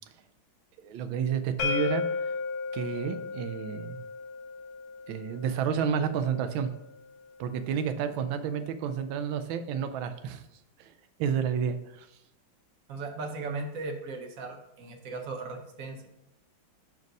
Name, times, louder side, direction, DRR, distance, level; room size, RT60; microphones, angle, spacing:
voice 1, 0.8-2.0 2.7-4.0 5.1-6.7 7.4-10.4 10.8-10.9 11.2-12.1, right 7 dB, 75° right, 9 dB, 1.4 m, -30 dB
sound 1, 1.6-7.4, left 5 dB, 60° left, 1.2 m, -35 dB
voice 2, 12.9-16.1, right 3 dB, 55° right, 4 dB, 1.1 m, -37 dB
5.2 x 4.6 x 5.2 m, 0.82 s
omnidirectional pair, 2.3 m